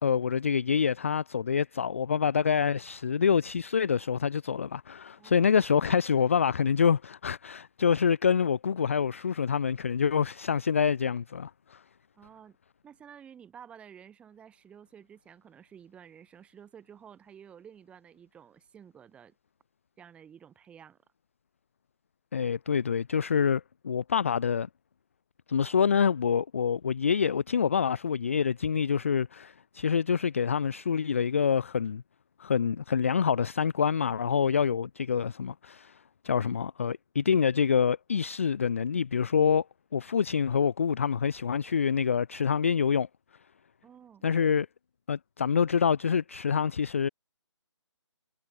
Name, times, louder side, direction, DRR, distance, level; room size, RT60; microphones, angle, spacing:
voice 1, 0.0-11.8 22.3-24.7 25.5-32.0 32.4-36.0 36.2-39.6 39.9-43.1 44.2-44.7 45.1-47.1, left 7 dB, 25° left, 0.4 m, -26 dB
voice 2, 5.2-5.5 8.6-8.8 12.1-12.6 12.8-19.3 20.0-21.0 43.8-44.2, right 8 dB, 5° right, 5.8 m, -52 dB
hypercardioid pair, 165°, 16 cm